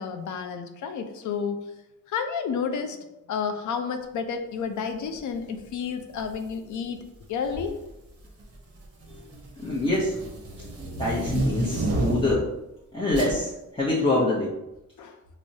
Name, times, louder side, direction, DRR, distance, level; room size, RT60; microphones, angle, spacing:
voice 1, 0.0-1.6 2.1-7.8 15.0-15.2, left 6 dB, 70° left, 7 dB, 0.5 m, -31 dB
masking tape, 6.2-6.5 7.5-7.9 8.2-12.5 13.1-13.4, right 1 dB, 50° right, 0.8 m, -30 dB
voice 2, 9.6-10.2 11.0-12.5 12.9-14.5, left 2 dB, 20° left, -7 dB, 0.6 m, -25 dB
4.6 x 2.0 x 2.7 m, 0.93 s
cardioid pair, 110°, 31 cm